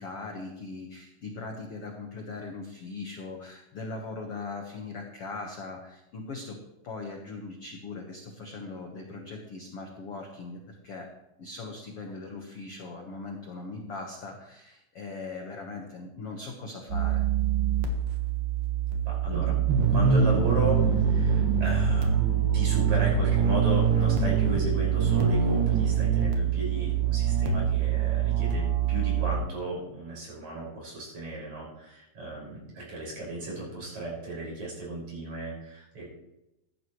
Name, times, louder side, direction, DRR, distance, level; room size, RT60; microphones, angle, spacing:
voice 1, 0.0-17.2, left 3 dB, 90° left, 2 dB, 1.3 m, -40 dB
sound 1, 16.9-29.4, right 7 dB, 60° right, 2.8 m, -24 dB
voice 2, 19.1-19.6 19.9-36.0, right 1 dB, 40° right, -4 dB, 7.0 m, -35 dB
16.0 x 12.5 x 3.2 m, 0.90 s
omnidirectional pair, 4.9 m